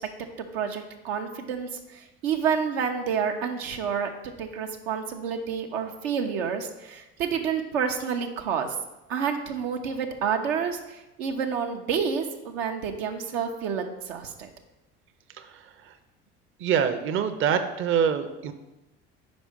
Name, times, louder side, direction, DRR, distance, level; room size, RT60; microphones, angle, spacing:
voice 1, 0.4-8.8 9.1-14.5, right 6 dB, 85° right, 4 dB, 0.8 m, -29 dB
voice 2, 15.4-15.9 16.6-18.5, right 7 dB, 40° right, 8 dB, 0.6 m, -25 dB
5.2 x 4.5 x 5.1 m, 1.0 s
hypercardioid pair, 75°, 30 cm